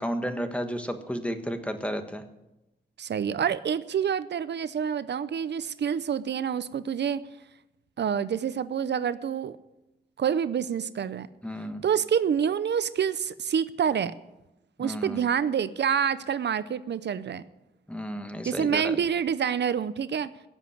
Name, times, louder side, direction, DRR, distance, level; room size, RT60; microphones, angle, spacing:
voice 1, 0.0-2.2 11.4-11.8 14.8-15.2 17.9-18.9, equal, 5° left, 7 dB, 1.5 m, -32 dB
voice 2, 3.0-7.2 8.0-9.6 10.2-11.3 11.8-14.1 14.8-17.4 18.4-20.3, right 8 dB, 85° right, 15 dB, 0.6 m, -27 dB
17.0 x 7.2 x 9.7 m, 0.94 s
wide cardioid pair, 110°, 17 cm